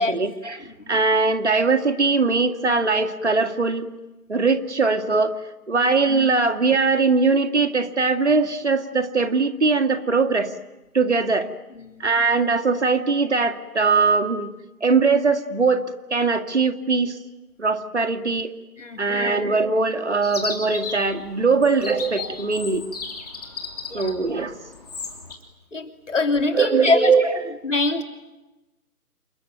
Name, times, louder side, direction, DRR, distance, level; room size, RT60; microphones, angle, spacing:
voice 1, 0.0-3.9 4.3-5.4 5.7-10.6 10.9-11.5 12.0-14.5 14.8-15.8 16.1-17.2 17.6-18.5 19.0-22.8 23.9-24.6 26.5-27.5, right 4 dB, 50° right, 8 dB, 2.1 m, -21 dB
voice 2, 18.8-19.3 23.9-24.2 25.7-27.1 27.6-28.0, left 3 dB, 55° left, 5 dB, 3.2 m, -24 dB
Chirp tweet, 20.2-25.3, left 4 dB, 25° left, 3.1 m, -35 dB
28.5 x 22.5 x 9.3 m, 1.0 s
figure-of-eight pair, 160°, 45 cm